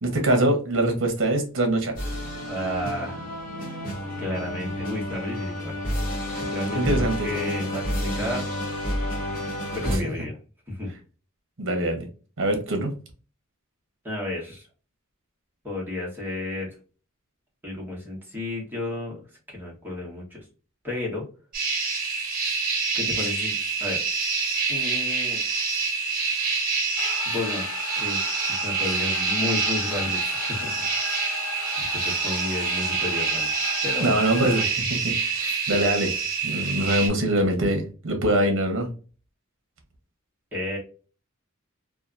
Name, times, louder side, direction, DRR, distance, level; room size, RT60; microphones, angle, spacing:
voice 1, 0.0-2.0 6.7-7.3 9.9-10.0 11.6-12.1 12.4-12.9 34.0-36.2 36.4-38.9, right 1 dB, 65° right, 4 dB, 0.9 m, -24 dB
sound 1, 2.0-10.0, equal, 40° left, 1.1 m, -30 dB
voice 2, 2.4-3.2 4.2-5.8 6.5-8.5 9.7-10.4 10.7-10.9 14.0-14.6 15.6-16.7 17.6-19.2 19.5-20.4 20.8-21.3 22.9-24.0 24.7-25.4 27.3-28.2 28.5-31.4 31.7-33.5 33.8-34.2 40.5-40.8, left 1 dB, 10° right, -4 dB, 1.1 m, -32 dB
sound 2, 21.5-37.1, right 4 dB, 45° right, 1.2 m, -27 dB
sound 3, 27.0-34.7, left 5 dB, 75° left, 0.4 m, -36 dB
2.8 x 2.3 x 2.4 m, 0.36 s
head